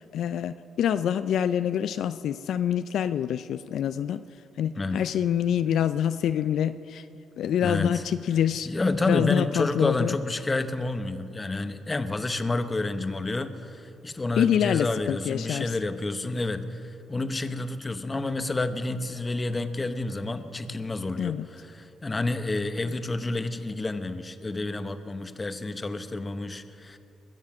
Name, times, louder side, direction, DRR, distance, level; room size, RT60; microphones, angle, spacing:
voice 1, 0.0-4.2 4.6-7.1 7.4-8.7 9.1-10.2 14.4-15.7 21.2-21.5, left 9 dB, 70° left, 12 dB, 0.3 m, -26 dB
voice 2, 4.7-5.1 7.6-8.0 8.6-27.0, left 2 dB, 20° left, 10 dB, 0.8 m, -29 dB
21.0 x 7.4 x 6.0 m, 2.6 s
cardioid pair, 90°, 0 cm